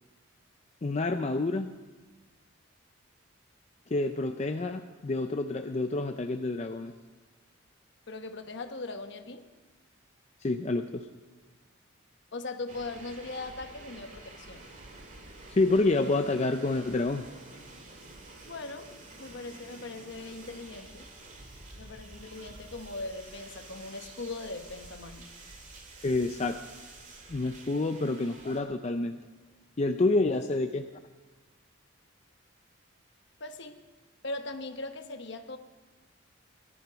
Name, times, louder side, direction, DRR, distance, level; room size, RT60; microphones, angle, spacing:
voice 1, 0.8-1.7 3.9-6.9 10.4-11.1 15.5-17.3 26.0-26.6 27.3-29.2 29.8-30.8, left 2 dB, 35° left, 6 dB, 0.5 m, -28 dB
voice 2, 8.1-9.4 12.3-14.7 18.4-18.9 19.2-21.1 21.8-25.3 33.4-33.8 34.2-35.6, left 2 dB, 60° left, 7 dB, 1.0 m, -40 dB
sound 1, 12.7-28.6, right 2 dB, 40° right, 2.2 m, -49 dB
18.5 x 11.0 x 5.1 m, 1.2 s
head